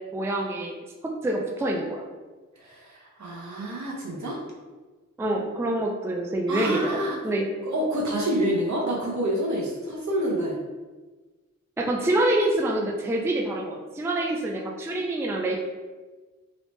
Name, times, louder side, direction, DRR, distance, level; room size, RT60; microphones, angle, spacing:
voice 1, 0.1-0.8 1.2-2.0 5.2-7.0 7.2-7.5 11.8-15.6, right 1 dB, 10° right, 0 dB, 0.4 m, -26 dB
voice 2, 2.6-4.4 6.5-7.2 7.6-10.5, right 1 dB, 65° right, -4 dB, 1.0 m, -28 dB
3.0 x 2.8 x 3.2 m, 1.3 s
wide cardioid pair, 85°, 31 cm